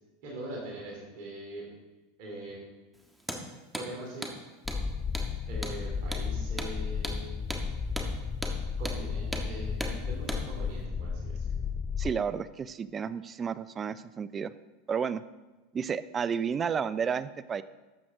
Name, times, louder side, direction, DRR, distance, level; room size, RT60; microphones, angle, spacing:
voice 1, 0.2-1.6 2.2-2.6 3.7-4.3 5.5-7.5 8.8-11.4, right 1 dB, 60° right, -3 dB, 3.5 m, -42 dB
Hammer, 3.2-3.4 3.7-3.9 4.2-4.4 4.7-4.8 5.1-5.3 5.6-5.8 6.1-6.3 6.6-6.7 7.0-7.2 7.5-7.6 8.0-8.1 8.4-8.6 8.9-9.0 9.3-9.5 9.8-10.0 10.3-10.4, right 1 dB, 5° right, 1.5 m, -36 dB
sound 1, 4.6-12.1, left 5 dB, 20° left, 0.7 m, -33 dB
voice 2, 12.0-14.5 14.9-15.2 15.7-17.6, right 6 dB, 30° right, 16 dB, 0.5 m, -31 dB
12.0 x 7.7 x 3.9 m, 1.2 s
hypercardioid pair, 95°, 0 cm